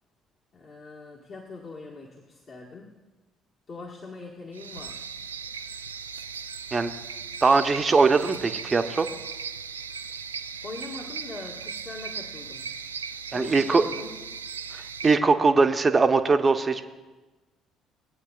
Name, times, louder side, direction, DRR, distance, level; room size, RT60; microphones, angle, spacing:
voice 1, 0.5-2.9 3.7-5.0 10.6-12.7 13.3-14.2, left 3 dB, 45° left, -2 dB, 1.6 m, -41 dB
sound 1, 4.5-15.2, right 6 dB, 85° right, 0.3 m, -37 dB
voice 2, 7.4-9.1 13.3-13.8 14.7-16.8, right 4 dB, 30° right, 8 dB, 0.8 m, -21 dB
20.5 x 8.8 x 2.4 m, 1.2 s
figure-of-eight pair, 50°, 0 cm